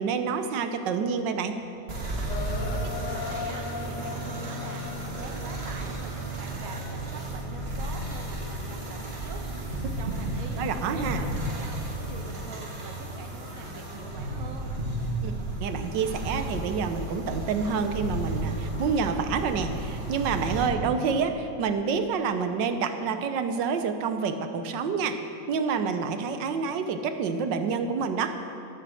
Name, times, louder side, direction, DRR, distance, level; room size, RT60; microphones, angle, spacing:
voice 1, 0.0-1.6 10.6-11.2 15.2-25.2 25.5-28.4, right 5 dB, 85° right, 8 dB, 1.5 m, -28 dB
sound 1, 1.9-20.7, right 1 dB, 35° right, 1.5 m, -33 dB
sound 2, 2.3-6.1 6.5-7.0, left 4 dB, 75° left, 1.4 m, -38 dB
voice 2, 2.7-9.4 9.7-14.8, right 5 dB, 55° right, 5 dB, 1.3 m, -45 dB
13.0 x 8.7 x 6.3 m, 3.0 s
omnidirectional pair, 1.9 m